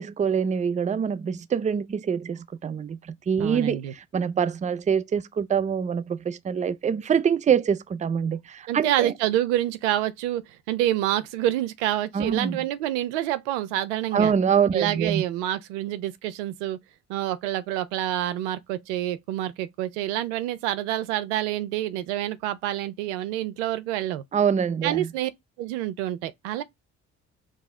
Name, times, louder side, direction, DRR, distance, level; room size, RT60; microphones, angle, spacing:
voice 1, 0.0-9.1 12.1-12.6 14.1-15.2 24.3-25.1, right 7 dB, 20° right, 0.4 m, -25 dB
voice 2, 3.4-3.9 8.7-14.3 14.7-16.8 17.1-24.2 24.8-25.3 25.6-26.6, right 13 dB, 90° right, 0.5 m, -27 dB
5.0 x 2.0 x 3.6 m
hypercardioid pair, 55°, 34 cm